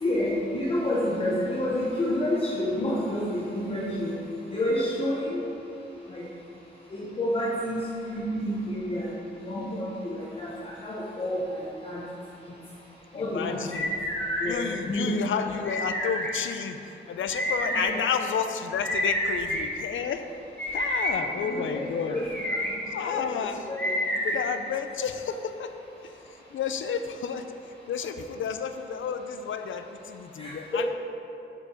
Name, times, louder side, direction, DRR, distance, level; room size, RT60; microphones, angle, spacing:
voice 1, 0.0-4.1 4.5-5.4 6.1-6.2 6.9-7.8 8.1-9.1 9.4-10.5 10.8-12.0 13.1-13.6 14.4-14.6 14.9-15.4 17.8-18.0 21.1-22.6 23.1-23.4 23.7-23.8 30.4-30.9, left 1 dB, 30° left, -6 dB, 0.8 m, -29 dB
voice 2, 13.1-13.9 14.4-20.3 20.7-22.2 22.9-23.7 24.2-25.7 26.0-26.1 26.5-27.5 27.9-30.9, left 7 dB, 90° left, 8 dB, 0.5 m, -31 dB
sound 1, 13.7-14.5 15.6-16.3 17.3-17.8 18.8-19.6 20.6-21.1 22.2-22.7 23.8-24.4, equal, 5° left, 1.2 m, -28 dB
7.0 x 4.8 x 5.0 m, 2.8 s
wide cardioid pair, 180°, 20 cm